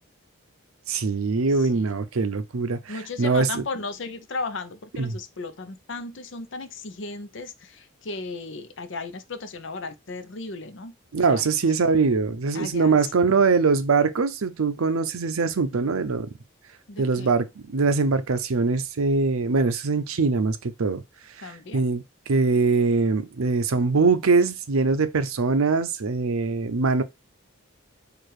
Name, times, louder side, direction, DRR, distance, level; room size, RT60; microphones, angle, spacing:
voice 1, 0.9-3.6 5.0-5.2 11.1-16.3 17.0-21.0 21.4-22.0 22.3-27.0, right 4 dB, 85° right, 0.6 m, -22 dB
voice 2, 2.9-10.9 11.3-11.5 12.5-13.0 16.9-17.3 21.4-21.8, left 3 dB, 60° left, 0.6 m, -35 dB
4.7 x 2.5 x 4.6 m
head